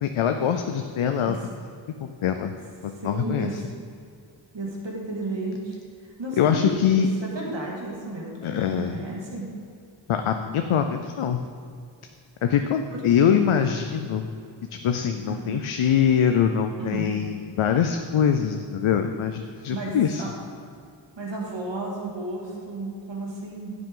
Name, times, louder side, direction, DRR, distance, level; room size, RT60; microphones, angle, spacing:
voice 1, 0.0-1.4 2.0-2.5 2.8-3.6 6.4-7.1 8.4-9.0 10.1-11.4 12.4-14.3 14.8-20.2, left 8 dB, 85° left, 6 dB, 0.6 m, -23 dB
voice 2, 3.0-3.5 4.5-5.8 6.2-9.5 12.9-13.0 15.3-15.5 16.8-17.2 19.7-20.3 21.2-23.7, right 2 dB, 60° right, -3 dB, 2.2 m, -33 dB
10.0 x 8.4 x 3.8 m, 2.4 s
cardioid pair, 40°, 48 cm